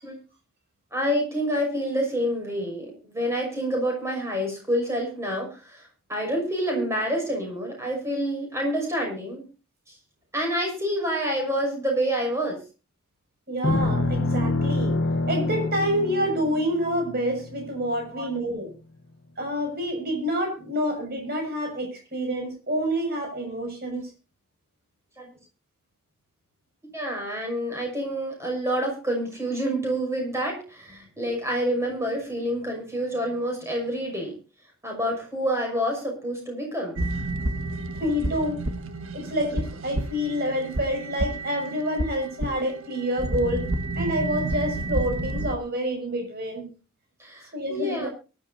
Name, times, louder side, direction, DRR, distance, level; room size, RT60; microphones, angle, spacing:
voice 1, 0.9-9.4 9.9-10.0 10.3-12.6 18.1-18.2 25.2-25.3 26.9-34.4 34.8-37.0 47.2-48.1, equal, 10° right, 1 dB, 6.1 m, -28 dB
voice 2, 13.5-14.9 15.3-18.7 19.4-24.1 37.9-38.6 39.1-43.7 44.0-46.7 47.5-48.1, equal, 45° right, 3 dB, 6.6 m, -28 dB
sound 1, 13.6-18.1, left 2 dB, 55° left, 1.1 m, -27 dB
sound 2, 37.0-45.5, right 2 dB, 70° right, 1.5 m, -30 dB
23.5 x 12.0 x 2.7 m, 0.33 s
head